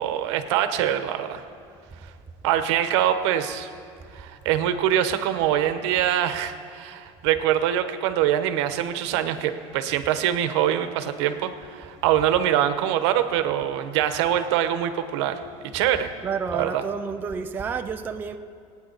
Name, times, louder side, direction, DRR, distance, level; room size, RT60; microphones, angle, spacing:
voice 1, 0.0-1.4 2.4-3.7 4.1-16.1 16.5-16.8, right 11 dB, 85° right, 1.0 m, -24 dB
voice 2, 16.2-18.4, right 5 dB, 15° right, 0.4 m, -30 dB
26.0 x 9.1 x 4.0 m
cardioid pair, 175°, 14 cm